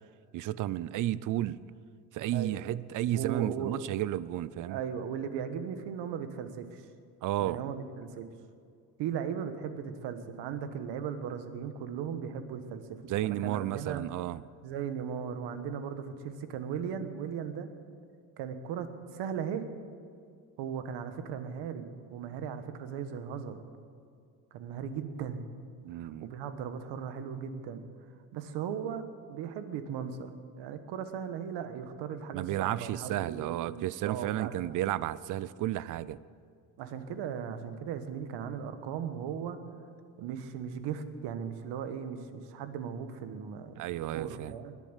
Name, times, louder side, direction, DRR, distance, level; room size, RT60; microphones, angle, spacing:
voice 1, 0.3-1.6 2.1-4.8 7.2-7.6 13.0-14.4 25.8-26.3 32.3-36.2 43.8-44.5, right 13 dB, 50° right, 19 dB, 0.5 m, -32 dB
voice 2, 3.1-3.8 4.7-6.8 7.4-8.3 9.0-14.1 14.6-17.7 18.4-19.6 20.6-23.6 24.5-25.5 26.0-27.8 28.3-29.0 29.3-30.3 30.6-34.6 34.9-35.0 36.8-39.6 40.2-43.8 44.1-44.7, right 7 dB, 75° right, 9 dB, 1.4 m, -37 dB
21.0 x 7.3 x 8.2 m, 2.3 s
cardioid pair, 140°, 42 cm